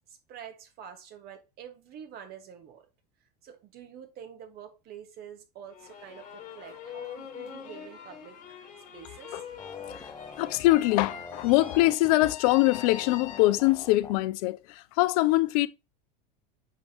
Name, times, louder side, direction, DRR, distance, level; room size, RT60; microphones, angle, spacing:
voice 1, 0.0-2.9 3.4-8.6 8.9-9.4, right 8 dB, 50° right, 1.7 m, -47 dB
sound 1, 5.7-13.9, left 9 dB, 40° left, 1.8 m, -44 dB
sound 2, 5.8-13.6, right 4 dB, 85° right, 2.4 m, -59 dB
sound 3, 9.6-14.1 14.7-14.8, left 5 dB, 15° left, 0.7 m, -44 dB
voice 2, 10.4-15.7, left 19 dB, 65° left, 0.6 m, -23 dB
6.7 x 5.1 x 3.0 m
hypercardioid pair, 90°, 20 cm